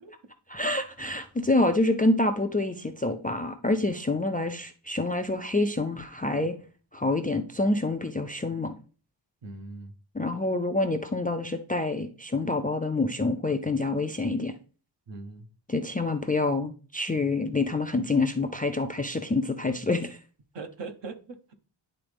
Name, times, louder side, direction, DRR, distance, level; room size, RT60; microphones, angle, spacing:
voice 1, 0.5-6.6 6.9-8.7 10.1-14.5 15.7-20.2, left 2 dB, 20° left, 0.3 m, -27 dB
voice 2, 9.4-9.9 15.1-15.5 20.5-21.5, right 3 dB, 60° right, 1.1 m, -40 dB
10.0 x 3.9 x 3.4 m
wide cardioid pair, 170°, 50 cm